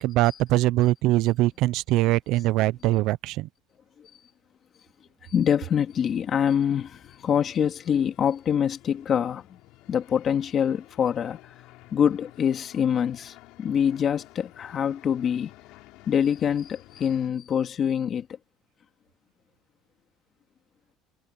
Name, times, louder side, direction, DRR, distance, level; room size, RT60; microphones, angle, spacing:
voice 1, 0.0-3.5, right 17 dB, 65° right, 0.6 m, -22 dB
voice 2, 5.3-9.6 9.9-11.4 11.9-15.5 16.1-18.3, left 8 dB, 40° left, 2.3 m, -25 dB
sound 1, 5.9-17.3, left 20 dB, 70° left, 7.3 m, -52 dB
cardioid pair, 115°, 0 cm